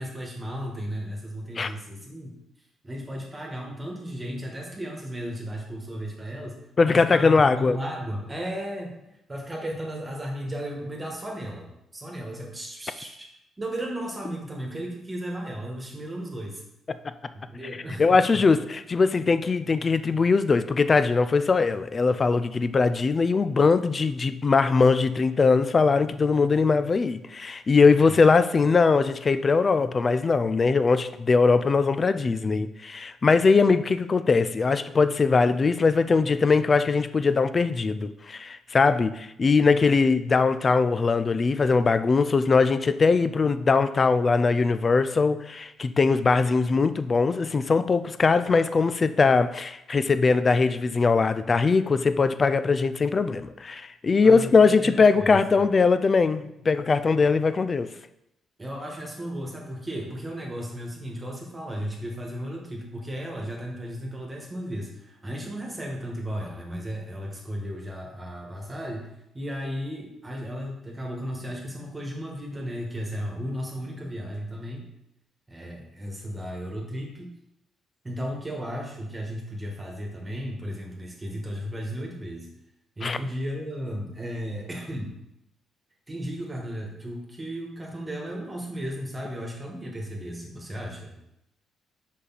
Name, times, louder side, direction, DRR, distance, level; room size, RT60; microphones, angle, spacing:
voice 1, 0.0-2.3 2.8-6.5 6.8-8.9 9.3-13.3 13.6-16.6 17.3-18.4 28.0-28.2 54.2-55.4 58.6-74.8 75.5-77.3 78.0-82.5 83.0-85.2 86.1-91.2, equal, 20° right, 0 dB, 1.6 m, -35 dB
voice 2, 6.8-7.8 18.0-57.9 83.0-83.2, left 4 dB, 35° left, 12 dB, 0.4 m, -21 dB
5.3 x 5.0 x 4.2 m, 0.83 s
cardioid pair, 90°, 0 cm